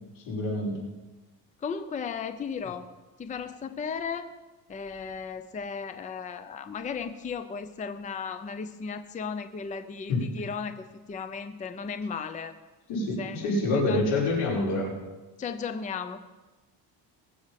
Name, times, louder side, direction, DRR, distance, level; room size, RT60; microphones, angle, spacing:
voice 1, 0.2-0.8 10.1-10.3 12.9-15.0, left 2 dB, 90° left, -4 dB, 5.5 m, -27 dB
voice 2, 1.6-2.9 3.2-4.3 4.7-12.5 13.2-13.4 13.9-14.0 15.4-16.2, left 6 dB, 20° left, 10 dB, 0.5 m, -35 dB
20.5 x 7.7 x 5.8 m, 1.2 s
cardioid pair, 150°, 43 cm